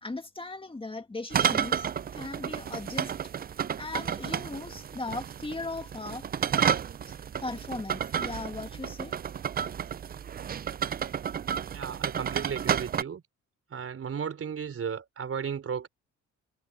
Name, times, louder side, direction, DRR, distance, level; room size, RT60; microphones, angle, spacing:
voice 1, 0.0-3.1 3.8-6.2 7.1-7.2 7.4-9.2, left 2 dB, 20° left, 2.2 m, -38 dB
sound 1, 1.3-13.0, right 8 dB, 30° right, 0.4 m, -31 dB
voice 2, 11.7-13.2 13.7-15.9, right 7 dB, 50° right, 4.1 m, -34 dB
cardioid pair, 90°, 30 cm